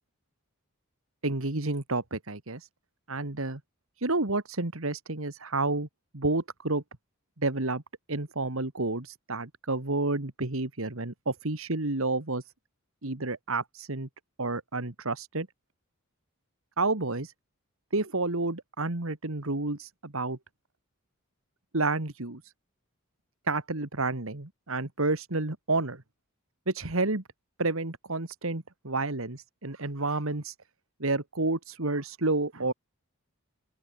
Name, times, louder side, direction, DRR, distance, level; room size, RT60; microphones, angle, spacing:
voice 1, 1.2-2.7 3.1-3.6 4.0-5.9 6.1-6.8 7.4-7.8 8.1-12.4 13.0-14.1 14.4-15.5 16.8-17.3 17.9-20.4 21.7-22.5 23.5-26.0 26.7-27.2 27.6-30.6 31.0-32.7, right 2 dB, 65° right, 2.0 m, -30 dB
open air
head